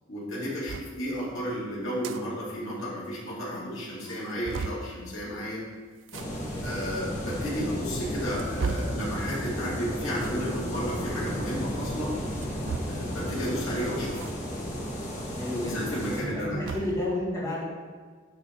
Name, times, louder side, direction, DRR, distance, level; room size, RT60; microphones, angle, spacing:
voice 1, 0.1-5.6 6.6-12.1 12.9-14.2 15.5-16.7, equal, 80° left, -6 dB, 2.3 m, -33 dB
sound 1, 0.7-0.9 1.8-2.2 2.6-2.7 2.9-3.0 3.6-3.7 4.0-4.9 6.0-6.3 7.1-7.2 7.9-9.0 10.1-10.4 12.2-13.1 14.2-14.3 14.7-14.8 16.1-17.0, right 5 dB, 65° right, 0.4 m, -36 dB
sound 2, 6.1-16.2, equal, 35° left, 1.4 m, -33 dB
voice 2, 6.5-6.9 15.3-15.7 16.2-17.6, left 1 dB, 15° left, -8 dB, 2.1 m, -32 dB
10.5 x 3.9 x 4.4 m, 1.5 s
head